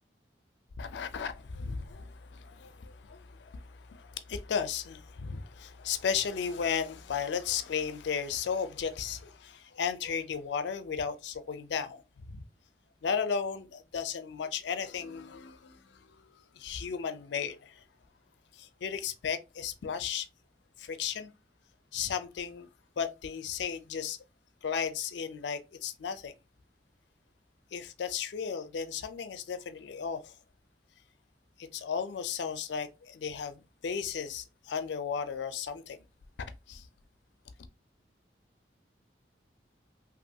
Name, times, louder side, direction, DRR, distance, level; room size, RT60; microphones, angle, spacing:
voice 1, 0.8-12.4 13.0-17.8 18.5-20.3 20.8-21.3 21.9-22.7 23.0-24.2 24.6-26.3 27.7-30.3 31.6-36.0 36.7-36.9, left 6 dB, 80° left, 0.4 m, -35 dB
3.0 x 2.5 x 2.7 m
head